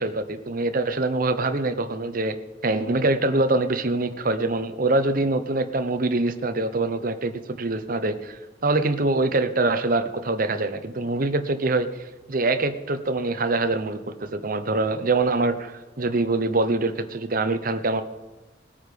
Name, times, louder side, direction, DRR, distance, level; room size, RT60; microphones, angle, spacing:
voice 1, 0.0-2.4 2.6-11.9 12.3-18.0, right 2 dB, 50° right, 9 dB, 0.9 m, -24 dB
20.0 x 8.7 x 5.1 m, 1.1 s
head